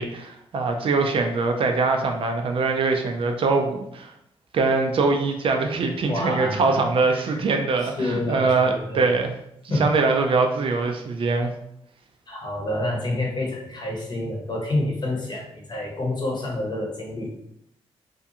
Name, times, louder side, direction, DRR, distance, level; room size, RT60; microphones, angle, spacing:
voice 1, 0.0-4.1 4.5-9.4 9.7-11.5, right 3 dB, 60° right, 4 dB, 0.4 m, -23 dB
voice 2, 6.1-6.8 7.1-9.1 9.7-9.9 12.3-17.3, left 1 dB, 45° left, -2 dB, 0.9 m, -28 dB
2.5 x 2.3 x 2.7 m, 0.75 s
cardioid pair, 95°, 10 cm